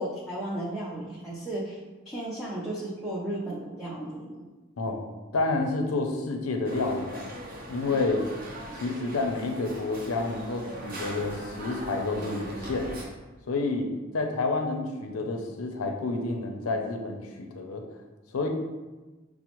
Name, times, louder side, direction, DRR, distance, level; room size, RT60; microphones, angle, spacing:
voice 1, 0.0-1.8 2.1-4.4 8.7-8.8, right 1 dB, ahead, -8 dB, 0.5 m, -34 dB
voice 2, 5.3-7.3 7.7-8.2 8.7-13.0 13.5-13.9 14.1-17.8 18.3-18.5, left 3 dB, 85° left, 4 dB, 0.5 m, -29 dB
sound 1, 6.6-13.0, equal, 45° right, 0.7 m, -40 dB
5.9 x 2.0 x 2.9 m, 1.2 s
head